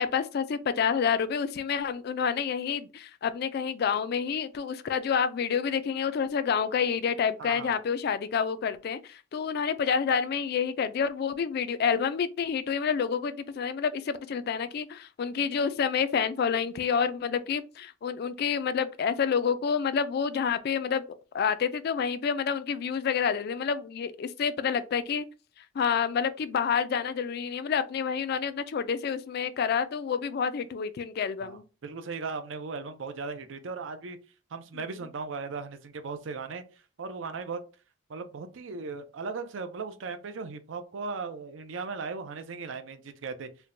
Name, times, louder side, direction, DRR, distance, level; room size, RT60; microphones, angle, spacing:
voice 1, 0.0-21.0 21.3-25.3 25.7-31.6 34.8-34.9, left 6 dB, 55° left, 0.3 m, -28 dB
voice 2, 7.4-7.7 31.4-34.2 34.5-36.6 37.0-37.6 38.1-43.5, right 4 dB, 70° right, 0.5 m, -37 dB
4.3 x 2.1 x 2.5 m
head